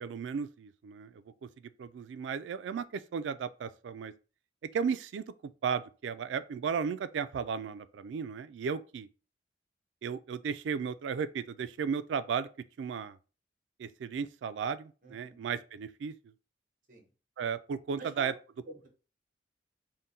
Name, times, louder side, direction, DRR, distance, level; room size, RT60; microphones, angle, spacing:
voice 1, 0.0-1.5 1.8-4.1 4.7-9.1 10.0-12.5 12.8-13.2 13.8-16.1 17.4-18.3, right 6 dB, 90° right, 0.3 m, -35 dB
voice 2, 15.0-15.4 16.9-17.1 17.9-18.3 18.6-18.9, right 2 dB, 50° right, 1.1 m, -48 dB
3.8 x 2.1 x 4.0 m
head